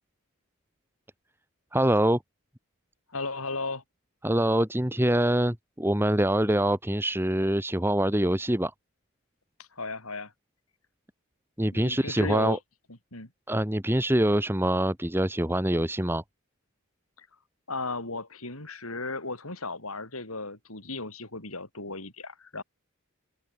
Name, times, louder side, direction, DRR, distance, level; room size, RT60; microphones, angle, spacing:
voice 1, 1.7-2.2 4.2-8.7 11.6-12.6 13.5-16.2, right 1 dB, 10° right, 2.0 m, -24 dB
voice 2, 3.1-3.8 9.6-10.3 11.7-12.6 13.1-13.3 17.2-17.3 17.7-22.6, left 3 dB, 80° left, 7.3 m, -35 dB
head